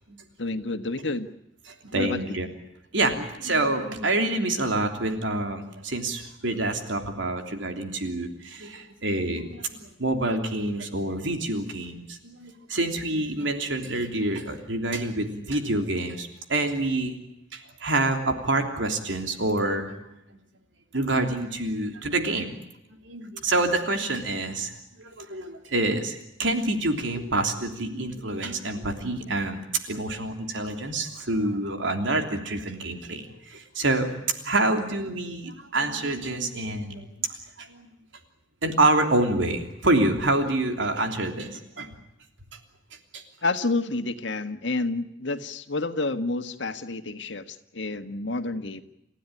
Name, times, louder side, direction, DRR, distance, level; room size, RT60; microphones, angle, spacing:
voice 1, 0.4-1.3 1.9-2.4 43.4-48.8, left 3 dB, 70° left, 7 dB, 1.7 m, -29 dB
voice 2, 1.8-2.5 2.9-17.2 17.5-20.2 20.9-22.5 23.0-29.6 29.9-37.9 38.6-41.9 43.1-43.2, right 2 dB, 75° right, 5 dB, 3.2 m, -27 dB
29.5 x 15.5 x 9.9 m, 0.84 s
head